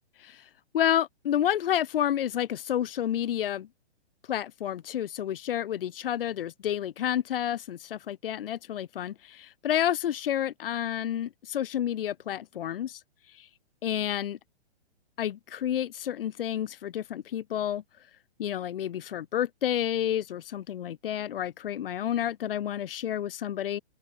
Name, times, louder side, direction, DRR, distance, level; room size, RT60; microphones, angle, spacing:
voice 1, 0.2-3.7 4.3-13.0 13.3-13.5 13.8-14.4 15.2-17.8 18.4-23.8, left 10 dB, 55° left, 1.8 m, -30 dB
open air
hypercardioid pair, 155°, 33 cm